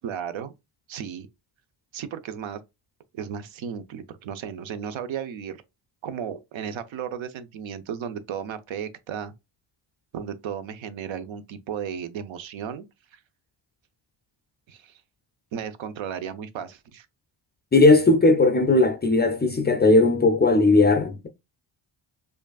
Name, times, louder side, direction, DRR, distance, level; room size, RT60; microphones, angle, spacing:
voice 1, 0.0-0.5 0.9-1.3 1.9-2.6 3.1-5.6 6.0-9.3 10.1-12.8 13.1-13.2 14.7-15.0 15.5-17.1, right 8 dB, 70° right, 0.7 m, -34 dB
voice 2, 17.7-21.3, left 2 dB, 20° left, 0.4 m, -18 dB
4.9 x 2.5 x 2.3 m
cardioid pair, 90°, 50 cm